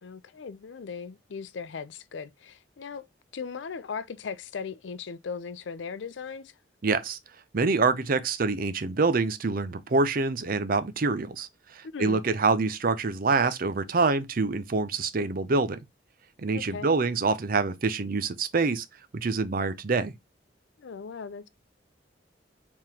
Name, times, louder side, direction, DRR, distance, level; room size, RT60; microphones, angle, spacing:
voice 1, 0.0-3.0 3.3-6.5 11.9-12.2 16.5-16.9 20.8-21.5, left 5 dB, 80° left, 0.5 m, -38 dB
voice 2, 6.8-7.2 7.5-15.8 16.4-18.8 19.1-20.1, right 4 dB, 50° right, 0.6 m, -26 dB
4.7 x 3.7 x 2.8 m
head